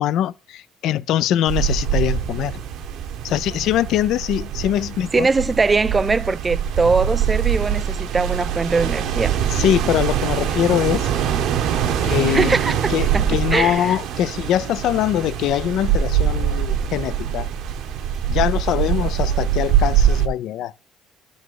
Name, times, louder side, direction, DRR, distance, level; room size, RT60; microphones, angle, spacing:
voice 1, 0.0-2.6 3.2-5.3 9.5-11.1 12.0-12.6 12.9-17.5 18.3-20.7, left 12 dB, 70° left, 0.4 m, -22 dB
sound 1, 1.5-20.3, right 9 dB, 75° right, 0.9 m, -23 dB
voice 2, 5.1-9.4 12.3-14.0, right 4 dB, 25° right, 0.4 m, -21 dB
12.5 x 4.1 x 4.7 m
supercardioid pair, 85°, 0 cm